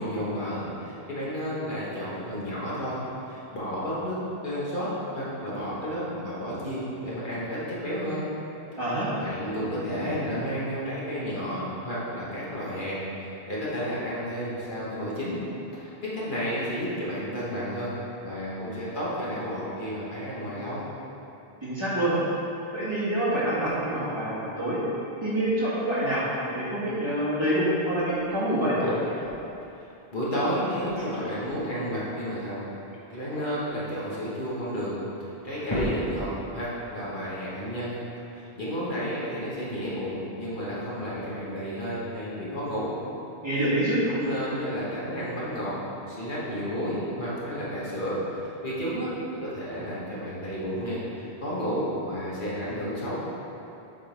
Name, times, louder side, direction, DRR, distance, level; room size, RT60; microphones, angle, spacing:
voice 1, 0.0-8.2 9.2-15.4 15.7-17.9 18.2-20.8 30.1-32.6 33.1-34.9 35.2-37.9 38.3-42.9 44.1-45.8 46.1-53.2, equal, 55° left, -8 dB, 1.5 m, -32 dB
voice 2, 8.8-9.1 21.6-22.2 22.7-24.8 25.2-26.2 26.5-28.8 43.4-44.0, right 1 dB, 25° right, -10 dB, 1.7 m, -26 dB
sound 1, 28.6-29.4 30.8-31.7 32.9-34.3 34.9-35.0 35.3-36.5, equal, 30° left, 1.1 m, -33 dB
7.4 x 3.9 x 5.1 m, 2.9 s
omnidirectional pair, 1.0 m